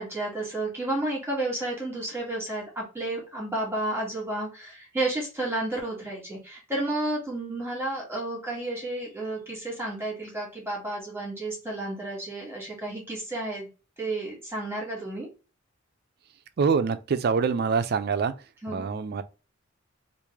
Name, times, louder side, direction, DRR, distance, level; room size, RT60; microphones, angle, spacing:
voice 1, 0.0-13.7 14.0-15.3 18.6-18.9, right 2 dB, 10° right, 1.4 m, -31 dB
voice 2, 16.6-19.2, right 5 dB, 50° right, 0.4 m, -25 dB
3.2 x 2.5 x 3.4 m
head